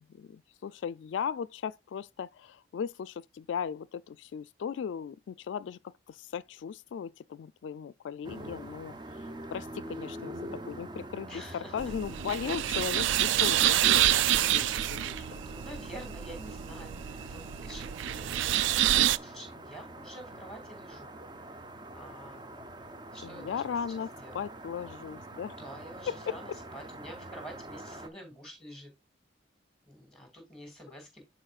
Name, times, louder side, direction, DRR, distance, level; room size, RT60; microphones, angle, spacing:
voice 1, 0.0-8.9 9.5-15.4 23.2-25.6 26.1-26.4, left 7 dB, 80° left, 0.3 m, -37 dB
sound 1, 8.2-28.1, right 1 dB, 25° right, 0.5 m, -45 dB
voice 2, 11.3-11.8 15.3-21.1 21.9-22.6 23.1-23.7 24.2-24.4 25.6-28.9 29.9-31.2, equal, 5° left, 2.4 m, -48 dB
sound 2, 11.8-19.2, right 12 dB, 85° right, 0.3 m, -27 dB
11.0 x 4.1 x 2.4 m
head